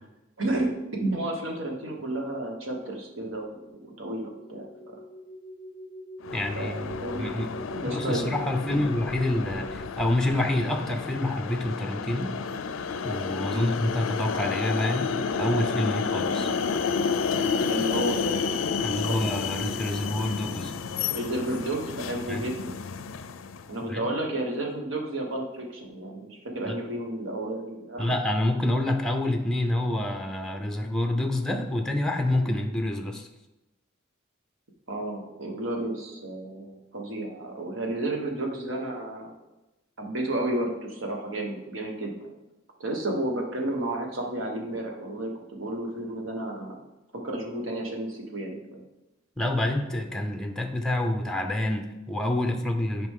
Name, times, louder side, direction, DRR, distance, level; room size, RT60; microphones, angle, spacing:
voice 1, 0.4-0.7 1.0-3.5 4.0-5.0 6.5-7.3 7.7-8.3 8.7-8.8 13.5-13.7 16.3-16.5 17.7-18.5 19.0-19.3 21.1-22.8 23.7-28.1 34.9-39.3 40.0-42.1 42.8-46.8 47.2-48.8, right 1 dB, 70° right, 1 dB, 1.4 m, -32 dB
sound 1, 4.2-9.8, equal, 30° right, 3.0 m, -42 dB
sound 2, 6.2-23.7, left 5 dB, 75° left, 0.4 m, -31 dB
voice 2, 6.3-6.7 7.1-12.3 13.0-15.1 15.4-16.5 18.8-20.7 22.3-22.4 23.9-24.0 26.7-26.8 28.0-33.3 49.4-53.1, left 1 dB, 5° left, 4 dB, 0.6 m, -27 dB
9.5 x 5.0 x 3.7 m, 0.99 s
head